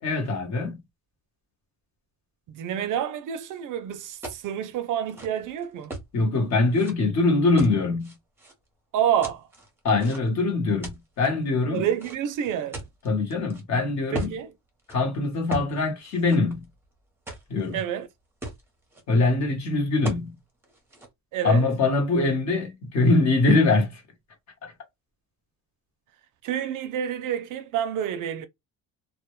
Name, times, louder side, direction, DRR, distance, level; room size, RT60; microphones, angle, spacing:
voice 1, 0.0-0.8 6.1-8.1 9.8-11.9 13.0-14.3 14.9-16.7 17.5-17.8 19.1-20.3 21.4-24.0 24.6-24.7, left 3 dB, 45° left, 1.0 m, -23 dB
voice 2, 2.5-5.9 8.9-9.5 11.7-12.9 14.1-14.5 17.7-18.1 21.3-21.7 26.4-28.5, right 9 dB, 55° right, 0.5 m, -28 dB
sound 1, 4.2-4.5 5.0-6.1 6.7-6.9 7.6-8.5 9.2-10.4 10.8-11.3 12.0-13.6 14.1-14.4 14.8-15.0 15.5-15.7 16.0-16.8 17.3-17.8 18.1-18.2 18.4-19.0 20.0-20.3 20.6-21.1, right 2 dB, 5° right, 0.6 m, -38 dB
2.1 x 2.1 x 2.9 m
cardioid pair, 150°, 37 cm